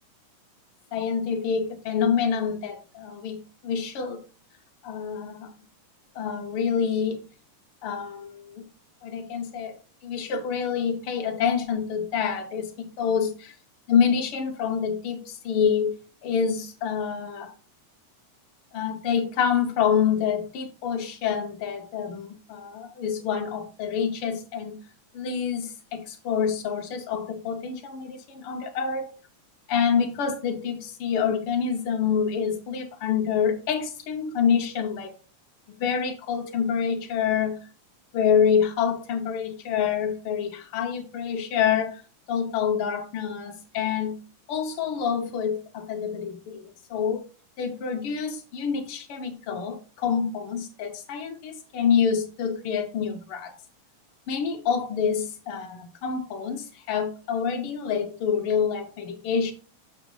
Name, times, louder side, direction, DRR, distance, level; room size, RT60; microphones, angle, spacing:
voice 1, 0.9-3.4 3.6-4.2 4.8-5.5 6.1-7.2 7.8-8.7 9.0-9.8 10.0-13.6 13.9-15.9 16.2-17.5 18.7-24.8 25.1-29.1 29.7-35.2 35.7-37.6 38.1-42.0 42.3-44.2 44.5-47.3 47.6-53.6 54.3-59.5, left 7 dB, 90° left, 1.2 m, -27 dB
7.1 x 6.3 x 3.1 m
omnidirectional pair, 3.7 m